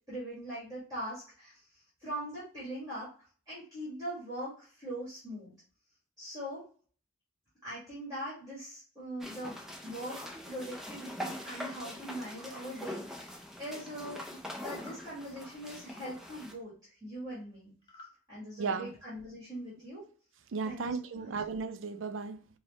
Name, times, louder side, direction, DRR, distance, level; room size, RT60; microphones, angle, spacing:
voice 1, 0.1-1.6 2.0-3.1 3.5-5.5 6.2-6.6 7.6-9.6 9.8-10.2 10.4-13.2 13.6-16.7 17.0-17.7 18.3-20.0 20.6-21.3, right 1 dB, 20° right, 1.7 m, -41 dB
sound 1, 9.2-16.5, left 1 dB, ahead, 0.5 m, -43 dB
sound 2, 14.6-15.0 17.8-18.2, left 3 dB, 25° left, 1.1 m, -53 dB
voice 2, 18.6-18.9 20.5-22.5, right 4 dB, 60° right, 0.4 m, -35 dB
4.7 x 2.1 x 4.1 m
head